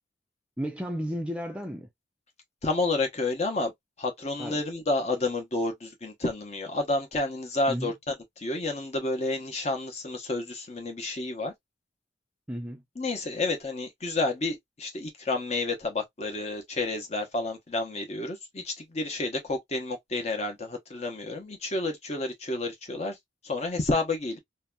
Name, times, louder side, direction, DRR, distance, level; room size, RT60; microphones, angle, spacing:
voice 1, 0.6-1.9 4.4-4.6 7.7-7.9 12.5-12.8, equal, 5° right, 0.4 m, -33 dB
voice 2, 2.6-3.7 4.0-7.9 8.4-11.5 13.0-23.2 23.4-24.4, left 2 dB, 35° left, 0.7 m, -30 dB
2.7 x 2.2 x 2.2 m
head